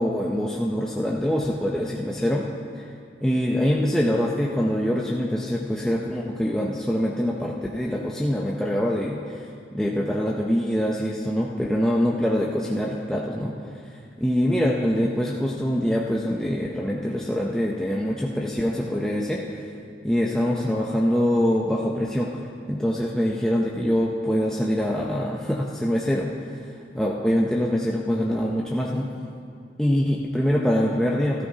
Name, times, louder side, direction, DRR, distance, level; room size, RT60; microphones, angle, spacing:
voice 1, 0.0-2.5 2.7-2.9 3.2-19.6 20.0-22.4 22.7-29.1 29.8-31.5, equal, 5° left, -3 dB, 0.5 m, -24 dB
16.0 x 14.0 x 2.8 m, 2.4 s
head